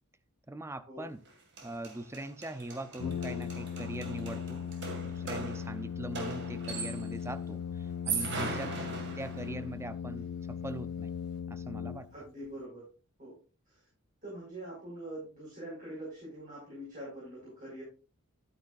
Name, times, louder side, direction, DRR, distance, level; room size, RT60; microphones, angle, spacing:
voice 1, 0.5-1.2 1.6-4.6 5.0-8.7 9.2-11.1 11.5-12.1, right 1 dB, 10° right, 11 dB, 0.5 m, -41 dB
sound 1, 1.2-1.3 1.6-7.2 7.9-9.7, right 4 dB, 50° right, 2.1 m, -39 dB
Brass instrument, 3.0-12.5, left 7 dB, 80° left, 0.3 m, -38 dB
voice 2, 8.6-9.0 12.1-12.8 13.2-13.3 13.7-13.8 14.2-17.8, right 1 dB, 35° right, -6 dB, 5.1 m, -44 dB
12.0 x 8.9 x 2.5 m, 0.34 s
head